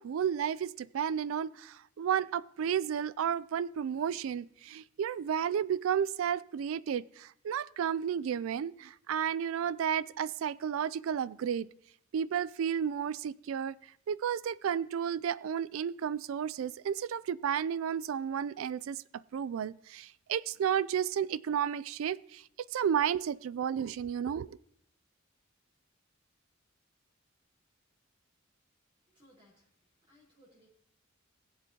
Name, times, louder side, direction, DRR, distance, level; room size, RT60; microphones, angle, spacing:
voice 1, 0.0-11.7 12.1-13.7 14.1-24.6, right 8 dB, 85° right, 0.3 m, -32 dB
voice 2, 29.0-30.7, equal, 25° right, 4.2 m, -64 dB
20.5 x 8.0 x 2.8 m
head